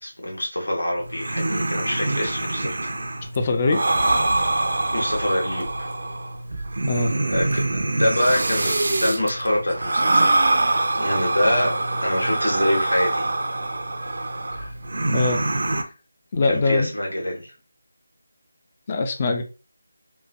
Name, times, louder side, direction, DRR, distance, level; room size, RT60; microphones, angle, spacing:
voice 1, 0.0-2.9 4.9-5.9 7.3-10.4 10.9-13.3 16.4-17.5, left 1 dB, 85° left, -1 dB, 1.3 m, -25 dB
sound 1, 1.0-15.8, right 2 dB, 60° right, 0.4 m, -24 dB
voice 2, 3.3-3.8 6.9-7.1 14.6-14.7 15.1-15.4 16.3-16.9 18.9-19.4, left 3 dB, 30° left, 6 dB, 0.4 m, -22 dB
3.0 x 2.2 x 2.4 m, 0.32 s
figure-of-eight pair, 160°, 0 cm